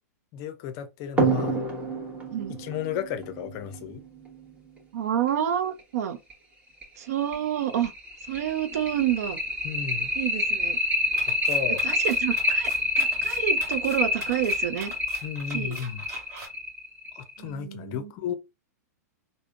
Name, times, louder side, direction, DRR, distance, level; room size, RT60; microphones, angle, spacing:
voice 1, 0.3-1.6 2.5-4.0 9.6-10.1 11.3-11.8 15.2-16.0 17.2-18.3, left 8 dB, 40° left, 0.5 m, -34 dB
sound 1, 1.2-4.3 5.8-5.9 6.3-6.4 6.8-6.9 7.3-17.4, left 1 dB, 15° right, 1.0 m, -27 dB
voice 2, 4.9-6.2 7.0-7.9 8.3-9.4 10.2-10.8 11.8-14.9 15.5-15.8 17.4-18.1, right 10 dB, 65° right, 0.5 m, -29 dB
sound 2, 11.1-16.5, right 3 dB, 35° right, 1.5 m, -43 dB
3.4 x 2.0 x 2.4 m
hypercardioid pair, 115°, 9 cm